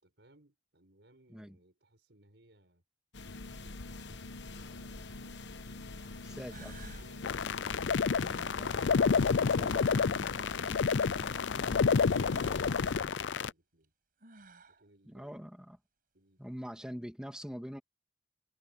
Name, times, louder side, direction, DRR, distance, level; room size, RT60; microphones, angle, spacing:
voice 1, 0.0-2.8 3.3-4.3 4.7-8.7 14.7-15.5 16.1-16.4 16.7-17.1, right 1 dB, 70° right, 5.2 m, -64 dB
sound 1, 3.1-12.9, left 2 dB, 70° left, 1.2 m, -45 dB
sound 2, 6.0-6.1 6.5-7.1 8.2-10.1 12.2-12.6 13.8-13.9 14.2-14.8, right 3 dB, 55° right, 6.0 m, -54 dB
voice 2, 6.2-6.7 8.5-10.3 15.1-15.8 16.4-17.8, equal, 5° right, 2.6 m, -45 dB
sound 3, 7.2-13.5, left 5 dB, 85° left, 0.5 m, -29 dB
head